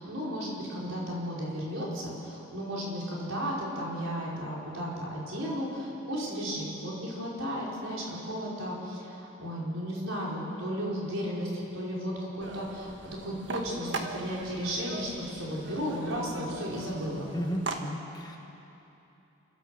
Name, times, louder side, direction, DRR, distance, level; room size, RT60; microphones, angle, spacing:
voice 1, 0.0-17.3, equal, 85° right, -5 dB, 5.4 m, -34 dB
sound 1, 12.4-17.8, right 3 dB, 65° right, 1.5 m, -40 dB
voice 2, 17.3-18.4, equal, 20° left, 2 dB, 1.6 m, -34 dB
28.0 x 13.0 x 8.0 m, 2.9 s
head